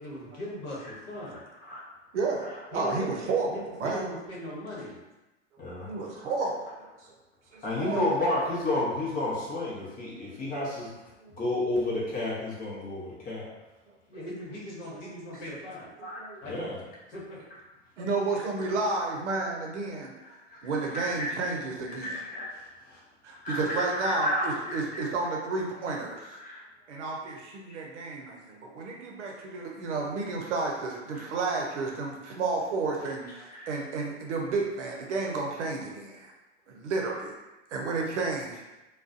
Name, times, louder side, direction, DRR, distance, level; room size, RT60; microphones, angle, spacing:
voice 1, 0.0-1.4 2.7-5.0 14.1-15.9 16.4-16.6 17.1-17.4, left 1 dB, 50° left, -6 dB, 1.1 m, -39 dB
voice 2, 2.1-4.0 5.6-6.7 7.5-8.2 10.0-10.1 11.2-11.4 14.9-15.1 16.0-16.6 18.0-20.1 20.6-22.2 23.2-26.4 26.9-36.3 36.7-37.3 37.7-38.6, right 3 dB, 70° right, 0 dB, 0.7 m, -32 dB
voice 3, 5.6-6.2 7.6-10.9 11.4-13.5 16.0-16.8 20.6-21.3 21.9-22.6 22.9-23.0 23.4-25.1 26.4-26.6 33.5-33.7, left 1 dB, 25° left, -6 dB, 0.8 m, -31 dB
2.4 x 2.2 x 2.5 m, 1.1 s
hypercardioid pair, 110°, 36 cm